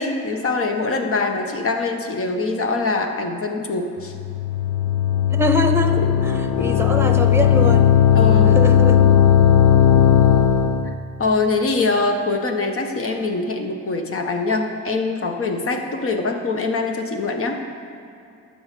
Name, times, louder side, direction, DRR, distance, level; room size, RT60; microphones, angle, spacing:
voice 1, 0.0-4.1 6.6-6.7 8.1-8.6 11.2-17.6, left 3 dB, 45° left, 4 dB, 1.4 m, -23 dB
sound 1, 4.1-10.9, left 9 dB, 70° left, 0.7 m, -16 dB
voice 2, 5.3-7.9 8.5-9.1, equal, 10° right, 6 dB, 1.0 m, -23 dB
12.0 x 4.9 x 8.3 m, 2.6 s
cardioid pair, 90°, 30 cm